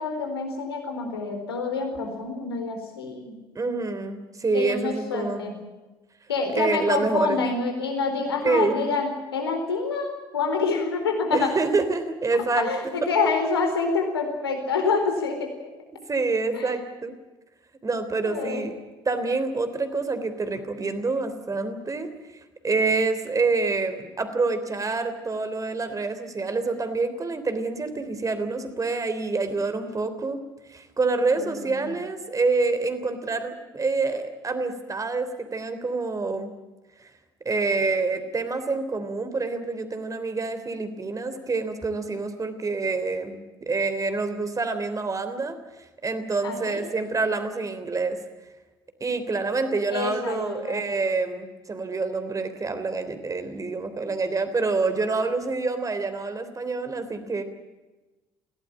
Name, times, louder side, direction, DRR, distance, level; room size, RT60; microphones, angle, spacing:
voice 1, 0.0-3.3 4.5-5.6 6.3-11.5 12.6-15.7 16.5-16.7 18.2-18.6 31.4-31.5 31.8-31.9 46.4-46.8 49.9-50.9, left 4 dB, 80° left, 4 dB, 4.3 m, -27 dB
voice 2, 3.5-5.4 6.5-7.4 8.4-8.9 11.3-12.7 16.1-17.1 17.8-18.7 19.0-22.1 22.6-30.4 30.7-36.5 37.0-37.1 37.4-45.6 46.0-48.2 49.0-57.4, right 3 dB, 25° right, 9 dB, 3.4 m, -27 dB
22.0 x 17.5 x 8.8 m, 1.1 s
figure-of-eight pair, 55°, 13 cm